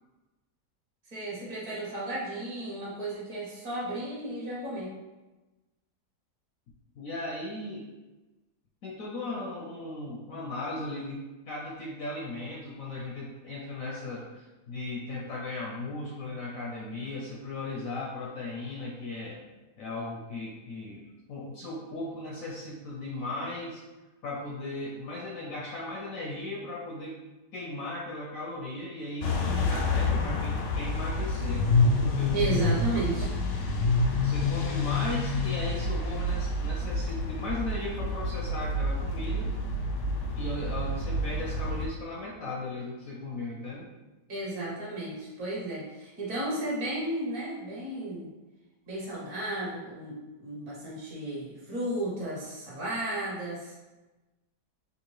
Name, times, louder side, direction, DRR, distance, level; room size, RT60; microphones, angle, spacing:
voice 1, 1.1-4.9 32.3-33.3 44.3-48.3 48.9-53.7, right 1 dB, 55° right, -5 dB, 1.3 m, -33 dB
voice 2, 7.0-7.9 8.8-19.4 19.8-21.0 21.3-23.8 24.2-27.1 27.5-31.7 32.0-32.8 34.2-39.6 40.3-43.9, left 2 dB, 70° left, -3 dB, 0.8 m, -37 dB
sound 1, 29.2-41.9, left 2 dB, 90° left, 1.2 m, -28 dB
3.6 x 2.6 x 3.1 m, 1.1 s
omnidirectional pair, 1.8 m